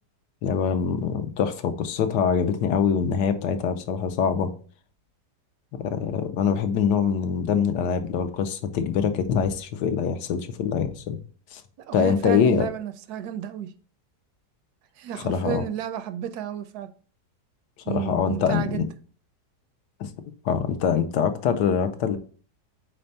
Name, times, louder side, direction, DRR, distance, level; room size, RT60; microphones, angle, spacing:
voice 1, 0.4-4.5 5.8-11.2 11.5-11.6 11.9-12.7 15.2-15.6 17.9-18.8 20.0-20.1 20.4-22.2, left 7 dB, 85° left, 1.4 m, -24 dB
voice 2, 11.9-13.7 15.0-16.9 17.8-18.9, right 9 dB, 75° right, 1.0 m, -32 dB
4.4 x 4.3 x 5.2 m
omnidirectional pair, 1.8 m